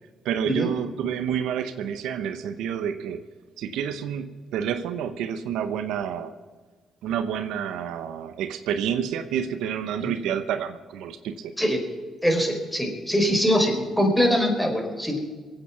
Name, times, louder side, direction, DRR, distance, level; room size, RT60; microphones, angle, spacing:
voice 1, 0.2-3.2 3.6-6.3 7.0-11.5, right 8 dB, 80° right, 10 dB, 0.8 m, -29 dB
voice 2, 12.2-15.2, equal, 5° left, 3 dB, 4.6 m, -23 dB
22.5 x 8.9 x 6.1 m, 1.5 s
supercardioid pair, 55°, 0 cm